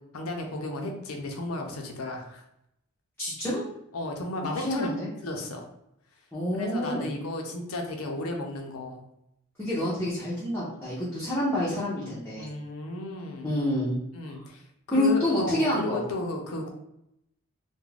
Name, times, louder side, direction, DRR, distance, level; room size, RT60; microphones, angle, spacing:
voice 1, 0.1-2.4 3.9-4.9 5.2-5.7 6.6-9.0 12.4-13.5 14.1-14.6 14.9-16.7, left 2 dB, 75° left, 3 dB, 0.5 m, -34 dB
voice 2, 3.2-3.6 4.4-5.1 6.3-7.1 9.6-12.5 13.4-14.0 14.9-16.0, left 1 dB, 10° left, -9 dB, 0.6 m, -27 dB
2.4 x 2.1 x 3.1 m, 0.80 s
head